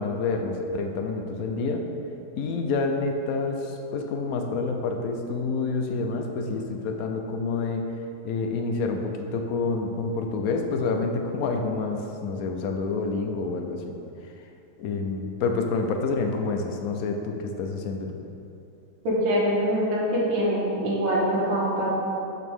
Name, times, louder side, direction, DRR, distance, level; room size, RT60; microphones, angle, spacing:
voice 1, 0.0-1.8 2.4-7.9 8.2-13.9 14.8-18.2, left 4 dB, 70° left, 4 dB, 0.8 m, -28 dB
voice 2, 19.0-21.9, equal, 85° right, -6 dB, 2.3 m, -24 dB
8.4 x 6.0 x 3.6 m, 2.8 s
omnidirectional pair, 2.1 m